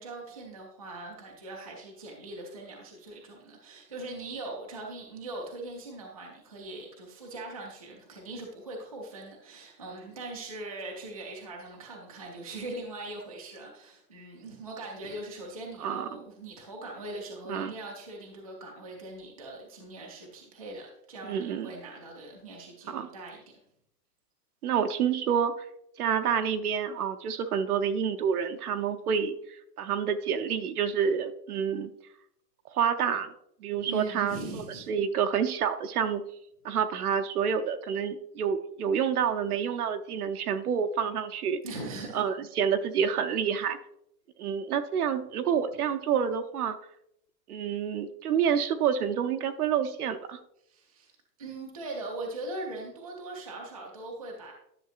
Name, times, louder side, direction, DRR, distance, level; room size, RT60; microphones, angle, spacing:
voice 1, 0.0-23.6 33.8-34.9 41.6-42.2 50.6-51.1 51.4-54.5, right 2 dB, 25° right, -1 dB, 0.4 m, -41 dB
voice 2, 21.2-21.7 22.9-23.1 24.6-25.5 26.0-31.9 32.7-33.3 33.6-36.2 36.6-41.6 42.1-43.8 44.4-46.8 47.5-50.4, right 7 dB, 60° right, 8 dB, 0.8 m, -28 dB
10.5 x 6.4 x 2.4 m, 0.75 s
hypercardioid pair, 175°, 50 cm